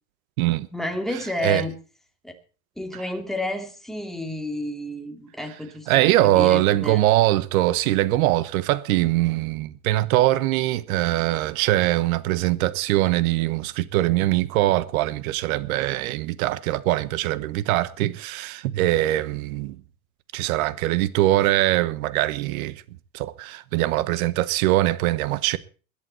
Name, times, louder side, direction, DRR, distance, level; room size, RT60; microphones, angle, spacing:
voice 1, 0.7-1.7 2.2-2.4 2.8-7.0, left 1 dB, ahead, 2.5 m, -31 dB
voice 2, 5.9-19.8 20.3-22.8 23.1-25.6, right 16 dB, 75° right, 1.2 m, -22 dB
20.5 x 11.0 x 4.4 m
supercardioid pair, 120°, 42 cm